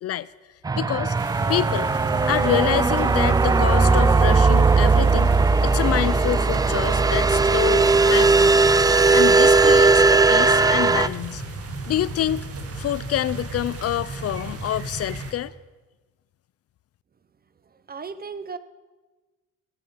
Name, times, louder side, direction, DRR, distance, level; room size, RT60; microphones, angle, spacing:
sound 1, 0.7-11.1, right 3 dB, 15° right, 0.3 m, -18 dB
voice 1, 0.8-1.2 1.5-1.9 2.3-5.3 5.6-8.6 9.1-11.4 11.9-12.5 12.8-15.5, left 12 dB, 55° left, 19 dB, 0.4 m, -27 dB
sound 2, 1.1-15.3, right 2 dB, 50° right, 1.9 m, -34 dB
voice 2, 17.7-18.6, right 5 dB, 30° right, 14 dB, 0.8 m, -36 dB
15.5 x 10.0 x 5.6 m, 1.3 s
cardioid pair, 90°, 30 cm